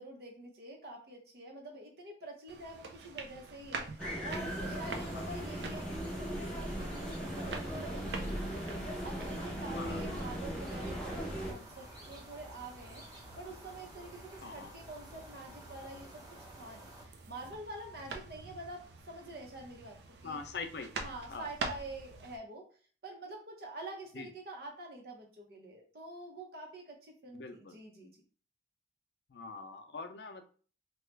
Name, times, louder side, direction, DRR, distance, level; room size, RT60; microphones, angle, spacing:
voice 1, 0.0-16.2 16.5-20.0 20.2-20.4 21.0-22.7 23.0-28.2, right 2 dB, 60° right, 0 dB, 0.9 m, -47 dB
sound 1, 2.5-22.4, right 3 dB, 75° right, 0.5 m, -47 dB
sound 2, 4.0-11.5, equal, 5° left, 0.6 m, -38 dB
sound 3, 4.3-17.0, right 1 dB, 25° right, 0.9 m, -52 dB
voice 2, 9.7-10.0 14.4-14.7 20.2-20.9 21.3-21.5 24.1-24.3 27.3-27.8 29.3-30.4, left 4 dB, 75° left, 6 dB, 0.5 m, -43 dB
3.0 x 2.3 x 3.2 m, 0.41 s
head